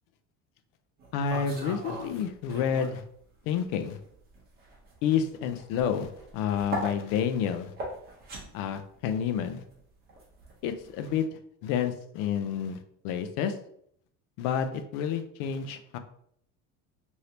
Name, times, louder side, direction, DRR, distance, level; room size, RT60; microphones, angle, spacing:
sound 1, 1.0-3.1 3.4-11.2, right 1 dB, 25° right, 0.8 m, -40 dB
voice 1, 1.1-3.0 3.5-4.0 5.0-7.7 8.5-9.6 10.6-11.3 11.6-13.6 14.4-16.0, left 8 dB, 70° left, 8 dB, 0.5 m, -29 dB
3.3 x 2.7 x 2.8 m, 0.68 s
cardioid pair, 175°, 36 cm